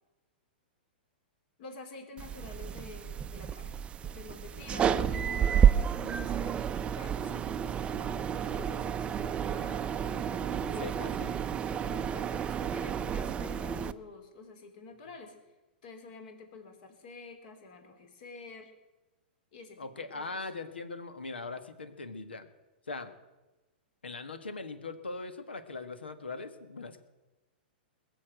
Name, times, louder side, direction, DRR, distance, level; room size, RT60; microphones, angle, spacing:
voice 1, 1.6-6.7 6.9-11.1 11.6-15.4 15.8-18.7 19.5-20.4, left 4 dB, 55° left, 5 dB, 3.5 m, -49 dB
sound 1, 2.2-13.9, right 8 dB, 20° right, 0.5 m, -30 dB
voice 2, 10.6-11.3 19.8-22.4 22.9-23.1 24.0-27.0, left 3 dB, 90° left, 11 dB, 1.6 m, -40 dB
21.0 x 7.1 x 8.0 m, 1.1 s
hypercardioid pair, 115°, 6 cm